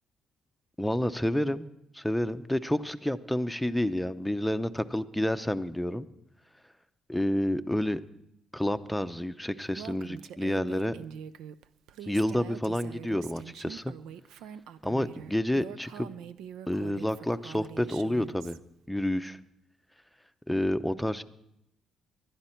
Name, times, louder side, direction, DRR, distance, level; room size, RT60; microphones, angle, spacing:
voice 1, 0.8-1.6 1.9-6.1 7.1-8.0 8.5-11.0 12.1-13.9 14.8-16.1 16.7-18.6 18.9-19.4 20.5-21.2, left 1 dB, 5° left, 10 dB, 0.7 m, -29 dB
Female speech woman speaking, 9.7-18.6, right 9 dB, 90° right, 0.5 m, -44 dB
20.0 x 12.0 x 4.5 m, 0.80 s
cardioid pair, 90°, 0 cm